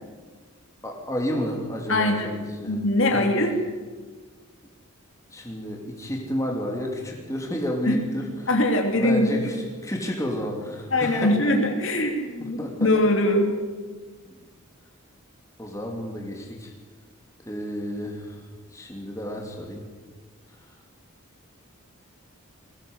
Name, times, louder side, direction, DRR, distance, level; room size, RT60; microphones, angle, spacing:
voice 1, 0.8-2.8 3.1-3.2 5.3-8.3 8.9-9.6 9.8-11.4 12.4-12.9 14.3-14.4 15.6-16.7 17.4-18.4 18.7-19.8, equal, 15° left, 0 dB, 2.9 m, -31 dB
voice 2, 1.9-2.4 2.6-3.5 7.9-8.0 8.5-9.5 10.9-13.5, left 1 dB, 60° left, 3 dB, 3.0 m, -22 dB
21.0 x 17.0 x 8.0 m, 1.4 s
head